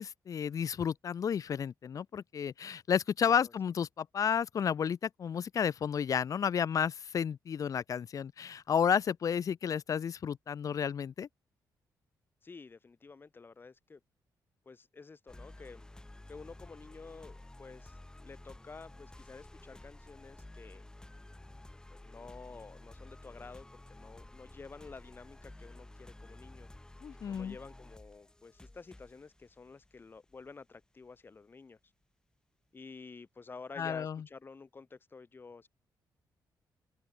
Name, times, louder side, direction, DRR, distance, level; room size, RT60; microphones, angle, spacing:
voice 1, 0.0-11.3 27.0-27.6 33.8-34.2, left 7 dB, 50° left, 1.4 m, -32 dB
voice 2, 12.4-14.0 14.7-15.9 16.3-20.8 21.9-26.7 27.3-31.8 32.7-35.7, left 4 dB, 30° left, 3.5 m, -51 dB
sound 1, 15.3-31.1, left 1 dB, 10° left, 3.4 m, -52 dB
cardioid pair, 125°, 7 cm